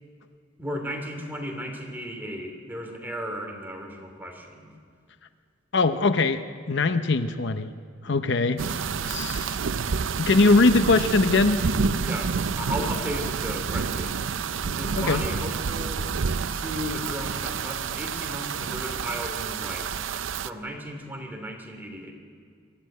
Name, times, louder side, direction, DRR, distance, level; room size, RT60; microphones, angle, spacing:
voice 1, 0.6-4.7 12.0-14.3 14.8-16.0 16.5-19.9 20.4-22.1, equal, 10° right, 2 dB, 3.1 m, -35 dB
voice 2, 5.7-6.4 6.7-7.7 8.0-8.6 9.1-9.6 10.2-11.6 15.0-15.2, left 3 dB, 65° left, 10 dB, 0.8 m, -21 dB
sound 1, 8.6-20.5, right 5 dB, 80° right, 0.6 m, -29 dB
23.5 x 13.5 x 9.2 m, 2.2 s
head